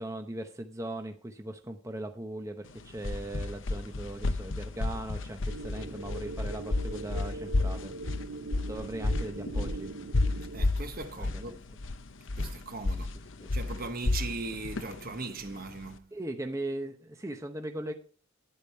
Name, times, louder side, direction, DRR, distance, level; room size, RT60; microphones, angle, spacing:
voice 1, 0.0-7.9 8.6-9.9 11.2-11.6 13.0-13.5 16.1-17.9, right 1 dB, 15° right, 0.8 m, -39 dB
sound 1, 2.7-15.9, left 2 dB, 65° left, 0.8 m, -32 dB
sound 2, 5.5-10.7, right 3 dB, 70° right, 0.6 m, -41 dB
voice 2, 10.5-11.6 12.4-13.1 13.5-16.1, right 3 dB, 45° right, 1.1 m, -39 dB
10.0 x 8.6 x 4.5 m
head